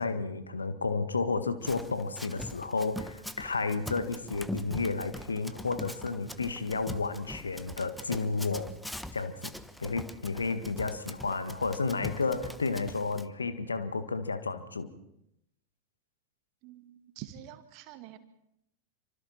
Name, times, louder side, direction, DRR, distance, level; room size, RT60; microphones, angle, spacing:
voice 1, 0.0-8.7 9.1-9.5 9.8-14.9, left 4 dB, 75° left, 1.7 m, -32 dB
Run, 1.6-13.2, left 1 dB, ahead, 1.1 m, -42 dB
voice 2, 16.6-18.2, right 12 dB, 45° right, 2.2 m, -46 dB
28.0 x 25.5 x 4.4 m
figure-of-eight pair, 90°, 0 cm